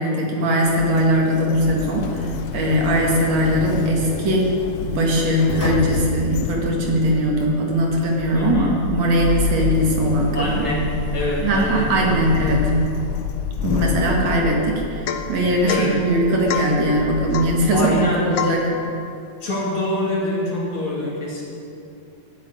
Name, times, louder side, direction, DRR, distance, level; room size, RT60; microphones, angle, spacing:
voice 1, 0.0-10.6 11.4-12.7 13.6-18.7, right 1 dB, 65° right, -1 dB, 3.1 m, -20 dB
Sliding door, 0.7-18.1, left 6 dB, 85° left, 1.3 m, -29 dB
voice 2, 8.3-8.8 10.3-10.8 11.1-12.3 15.7-16.0 17.7-18.4 19.4-21.4, left 1 dB, 45° left, -4 dB, 3.3 m, -25 dB
Domestic sounds home sounds / Chink clink / Drip, 15.1-15.4 15.7-15.9 16.5-16.8 17.3-17.6 18.4-18.7, left 8 dB, 70° left, 1.8 m, -26 dB
13.0 x 8.5 x 9.6 m, 2.7 s
omnidirectional pair, 3.4 m